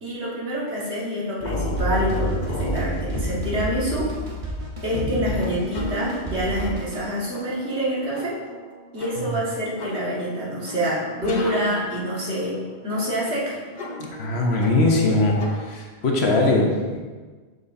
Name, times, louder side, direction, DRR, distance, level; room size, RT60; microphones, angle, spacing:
voice 1, 0.0-4.1 4.8-8.4 8.9-13.6, equal, 80° right, -7 dB, 2.0 m, -26 dB
sound 1, 1.4-15.7, left 1 dB, 50° left, 0.7 m, -32 dB
Drum kit, 1.8-7.1, right 3 dB, 35° right, 0.9 m, -34 dB
voice 2, 14.0-15.4 15.6-17.0, left 2 dB, 75° left, 0 dB, 1.2 m, -21 dB
6.5 x 6.1 x 2.6 m, 1.4 s
omnidirectional pair, 1.1 m